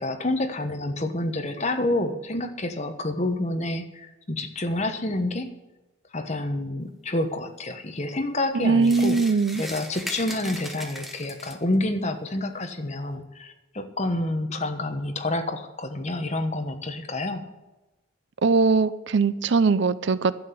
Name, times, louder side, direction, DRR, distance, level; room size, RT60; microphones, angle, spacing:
voice 1, 0.0-5.5 6.1-9.2 9.6-17.4, left 1 dB, 30° left, 6 dB, 1.2 m, -28 dB
voice 2, 8.6-9.6 18.4-20.3, right 4 dB, 55° right, 16 dB, 0.5 m, -21 dB
sound 1, 8.8-11.7, equal, ahead, 1.0 m, -38 dB
12.0 x 7.7 x 8.4 m, 1.1 s
head